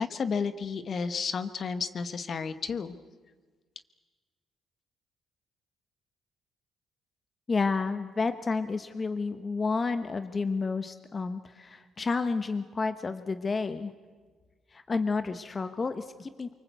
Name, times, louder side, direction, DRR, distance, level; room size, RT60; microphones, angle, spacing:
voice 1, 0.0-3.0, left 5 dB, 50° left, 11 dB, 1.2 m, -32 dB
voice 2, 7.5-13.9 14.7-16.5, left 4 dB, 35° left, 10 dB, 1.0 m, -30 dB
24.5 x 23.5 x 8.2 m, 1.4 s
cardioid pair, 90°, 0 cm